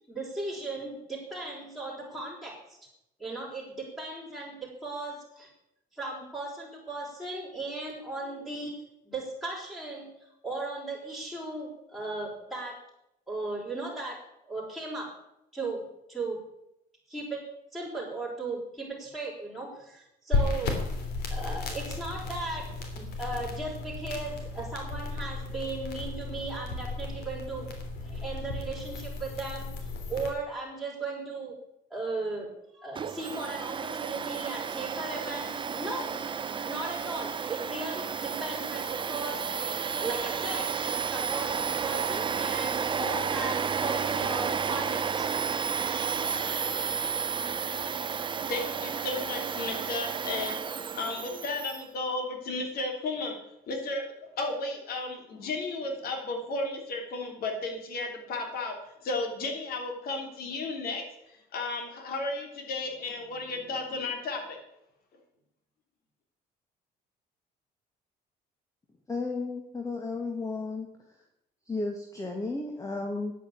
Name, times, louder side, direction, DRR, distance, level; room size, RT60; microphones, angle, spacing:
voice 1, 0.1-2.8 3.2-5.5 5.9-8.7 9.0-10.1 10.4-12.8 13.3-14.2 14.5-15.1 15.5-15.8 16.1-16.4 17.1-20.7 21.3-22.7 22.9-27.7 28.0-31.6 31.9-32.5 32.7-36.2 36.6-39.4 40.0-40.7 41.1-45.0, right 2 dB, ahead, -8 dB, 5.2 m, -37 dB
sound 1, 20.3-30.3, left 3 dB, 85° left, 3.2 m, -34 dB
Domestic sounds home sounds, 33.0-51.8, right 6 dB, 30° right, 0.7 m, -32 dB
voice 2, 48.5-50.6 50.9-53.3 53.7-54.0 54.4-58.8 59.0-61.0 61.5-64.6, left 3 dB, 65° left, 3 dB, 3.4 m, -33 dB
voice 3, 69.1-70.9 71.7-73.3, left 3 dB, 20° left, 3 dB, 1.9 m, -33 dB
10.5 x 8.3 x 8.6 m, 0.82 s
cardioid pair, 110°, 17 cm